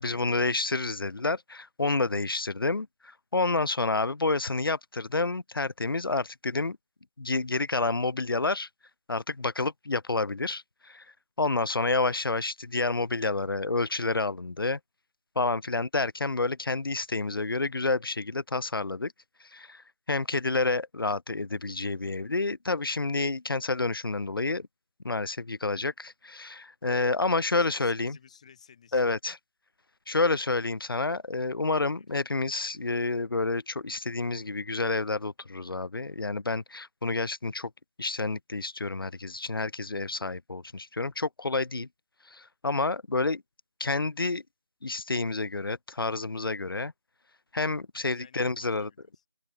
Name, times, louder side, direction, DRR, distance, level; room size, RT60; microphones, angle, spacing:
voice 1, 0.0-6.8 7.2-8.7 9.1-11.0 11.4-14.8 15.4-19.1 19.5-24.7 25.0-28.2 28.9-29.4 30.1-37.7 38.0-41.9 42.3-43.4 43.8-44.4 44.8-46.9 47.5-48.9, left 3 dB, 50° left, 0.5 m, -29 dB
voice 2, 27.3-29.1 30.3-30.4 31.8-32.0 48.0-49.2, left 7 dB, 15° left, 2.6 m, -56 dB
open air
figure-of-eight pair, 170°, 15 cm